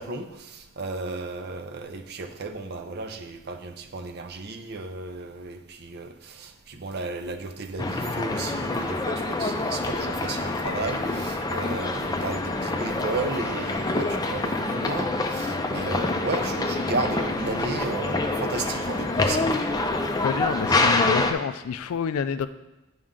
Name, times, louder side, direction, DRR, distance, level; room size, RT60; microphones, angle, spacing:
voice 1, 0.0-19.6, right 3 dB, 50° right, 8 dB, 0.6 m, -34 dB
sound 1, 7.8-21.3, left 2 dB, 20° left, 0.5 m, -26 dB
voice 2, 20.2-22.5, left 7 dB, 75° left, 12 dB, 0.3 m, -28 dB
10.0 x 5.2 x 3.7 m, 0.99 s
head